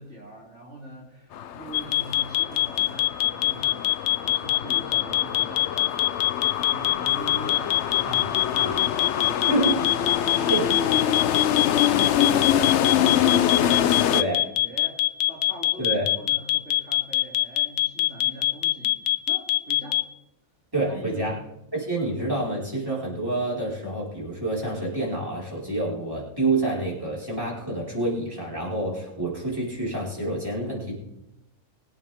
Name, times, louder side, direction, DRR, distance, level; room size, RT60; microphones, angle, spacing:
voice 1, 0.0-9.6 10.0-10.6 11.1-14.3 14.6-20.0 20.8-21.4, right 1 dB, 45° right, -5 dB, 3.4 m, -42 dB
sound 1, 1.3-14.2, left 10 dB, 65° left, 0.7 m, -25 dB
sound 2, 1.7-20.0, left 14 dB, 90° left, 1.2 m, -22 dB
voice 2, 9.5-9.8 10.4-10.6 14.1-14.4 15.8-16.0 20.7-21.3 21.7-30.9, right 2 dB, 15° right, -6 dB, 4.9 m, -27 dB
22.5 x 8.5 x 3.6 m, 0.87 s
omnidirectional pair, 1.6 m